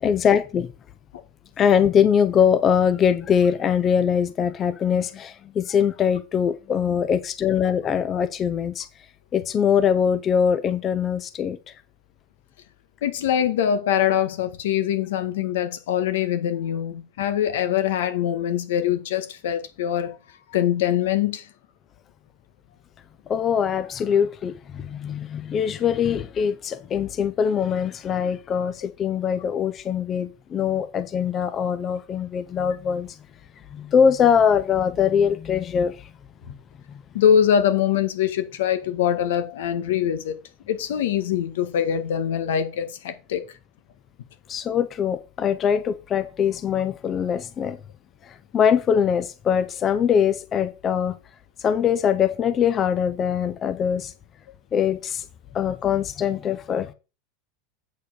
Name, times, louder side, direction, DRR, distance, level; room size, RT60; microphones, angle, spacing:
voice 1, 0.0-0.7 1.6-8.9 9.3-11.6 23.3-33.2 33.7-36.0 36.5-36.6 44.5-47.8 48.2-51.2 51.6-54.1 54.7-55.2 55.5-56.9, left 7 dB, 25° left, 0.6 m, -22 dB
voice 2, 13.0-20.2 20.5-21.4 36.4-36.5 37.1-40.3 40.7-43.4, left 9 dB, 85° left, 1.6 m, -23 dB
8.3 x 4.7 x 6.2 m
supercardioid pair, 160°, 0 cm